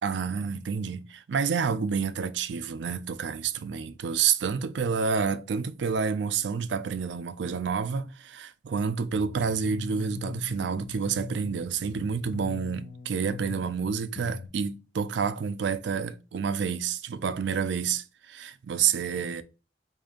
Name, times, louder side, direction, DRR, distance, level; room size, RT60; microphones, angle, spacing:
voice 1, 0.0-19.4, right 6 dB, 75° right, 0.4 m, -29 dB
sound 1, 9.1-14.5, left 5 dB, 55° left, 0.4 m, -41 dB
4.9 x 2.6 x 2.4 m
head